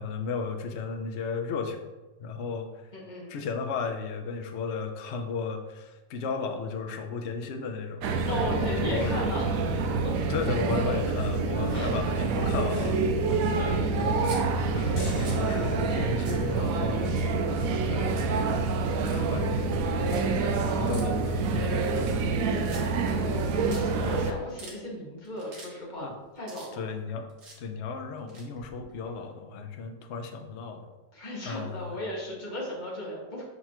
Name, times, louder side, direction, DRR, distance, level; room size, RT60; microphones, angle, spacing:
voice 1, 0.0-1.8 2.2-2.9 3.3-9.3 10.3-13.1 14.0-14.3 14.7-17.4 17.8-18.5 19.1-20.2 20.8-22.2 24.0-24.1 26.0-26.1 26.7-27.3 27.6-30.9 31.4-32.0, left 5 dB, 80° left, 5 dB, 0.6 m, -34 dB
voice 2, 2.9-3.4 8.3-9.6 11.7-11.9 13.2-14.2 15.0-15.1 23.1-26.7 31.1-33.4, left 1 dB, 25° left, -5 dB, 1.7 m, -36 dB
sound 1, 8.0-24.3, right 4 dB, 75° right, 0.8 m, -27 dB
sound 2, 14.1-14.4 14.9-15.4 15.9-16.5 17.0-17.6 17.8-18.4 18.8-19.2 20.0-20.2 20.9-21.0 21.7-22.3 22.6-23.1 23.4-23.5 23.7-23.8 24.3-24.8 25.2-25.7 25.9-27.0 27.3-27.6 28.2-29.1, right 3 dB, 50° right, 1.4 m, -46 dB
sound 3, 15.0-16.3, left 3 dB, 45° left, 1.2 m, -44 dB
6.1 x 5.3 x 3.0 m, 1.1 s
omnidirectional pair, 2.0 m